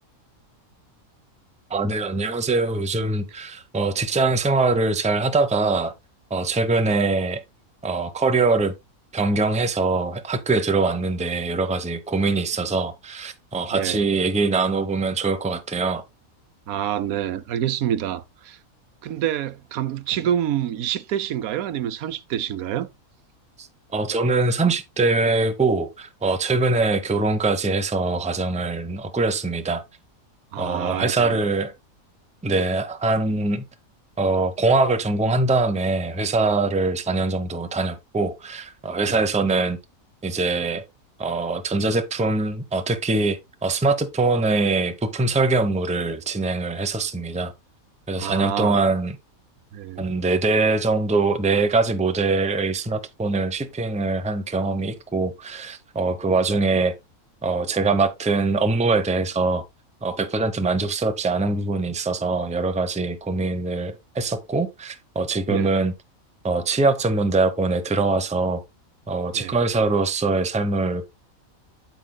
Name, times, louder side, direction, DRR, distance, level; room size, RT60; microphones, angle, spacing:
voice 1, 1.7-5.9 6.3-7.4 7.8-8.7 9.1-16.0 23.6-29.8 30.6-31.7 32.4-33.6 34.2-39.8 40.2-40.8 41.2-47.5 48.1-49.2 50.0-56.9 57.4-59.6 60.0-65.9 66.4-68.6 69.1-71.1, right 3 dB, 5° right, 0.6 m, -23 dB
voice 2, 13.7-14.0 16.7-18.6 19.0-22.9 30.5-31.4 39.0-39.2 48.2-48.8 49.7-50.0 65.5-65.7 69.3-69.5, right 10 dB, 90° right, 1.2 m, -27 dB
9.1 x 7.8 x 2.2 m
omnidirectional pair, 1.4 m